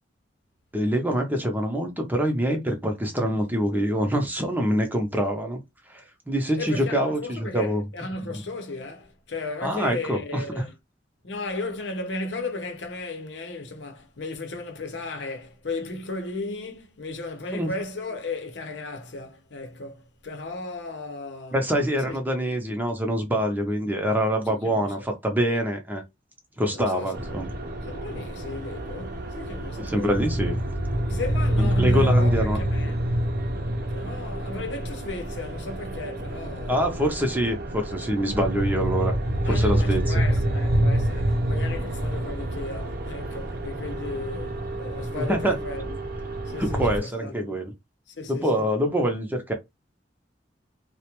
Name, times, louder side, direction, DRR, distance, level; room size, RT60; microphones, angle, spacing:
voice 1, 0.7-5.6 5.9-7.8 9.6-10.4 17.5-17.7 21.5-26.0 26.6-27.5 29.8-30.5 31.6-32.6 36.7-39.1 39.4-40.1 45.1-45.6 46.6-47.7 48.3-49.5, equal, 10° right, 0.6 m, -25 dB
voice 2, 6.6-10.7 11.2-21.7 22.1-22.2 24.5-25.1 26.7-27.5 27.8-30.3 31.0-33.0 33.9-36.9 39.4-46.1 46.5-47.5 48.1-48.7, left 2 dB, 85° left, 0.7 m, -35 dB
sound 1, 27.1-47.0, right 1 dB, 60° right, 0.6 m, -27 dB
2.4 x 2.1 x 2.9 m
head